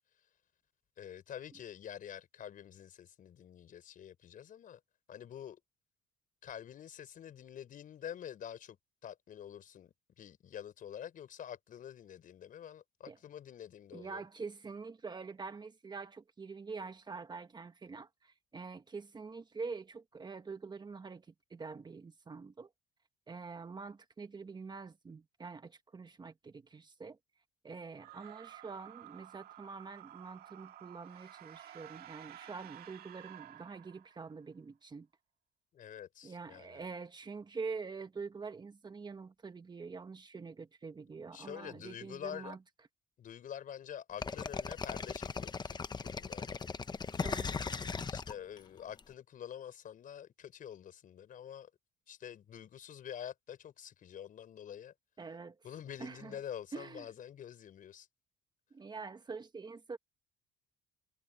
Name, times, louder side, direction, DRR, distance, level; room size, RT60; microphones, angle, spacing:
voice 1, 1.0-4.8 5.1-5.6 6.4-8.8 9.0-14.3 35.7-36.9 41.3-42.6 43.2-45.8 46.0-46.6 48.1-51.7 52.1-54.9 55.6-58.1, left 9 dB, 55° left, 5.2 m, -47 dB
voice 2, 13.9-22.7 23.3-27.2 27.6-35.1 36.2-42.6 47.2-47.7 55.2-55.5 56.0-56.3 56.7-57.1 58.7-60.0, right 4 dB, 25° right, 1.4 m, -45 dB
sound 1, 27.9-34.4, right 12 dB, 65° right, 2.0 m, -53 dB
sound 2, 44.2-49.0, left 5 dB, 25° left, 1.0 m, -38 dB
cardioid pair, 110°, 17 cm